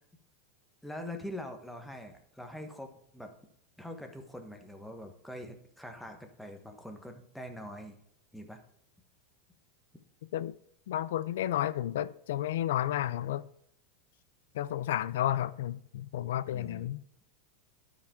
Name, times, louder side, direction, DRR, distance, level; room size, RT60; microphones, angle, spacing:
voice 1, 0.8-3.3 3.8-7.9 8.3-8.6 16.5-16.9, left 1 dB, ahead, 4 dB, 1.1 m, -44 dB
voice 2, 10.9-13.4 14.5-17.0, left 12 dB, 80° left, 16 dB, 0.4 m, -32 dB
12.0 x 5.1 x 3.6 m, 0.71 s
supercardioid pair, 150°, 0 cm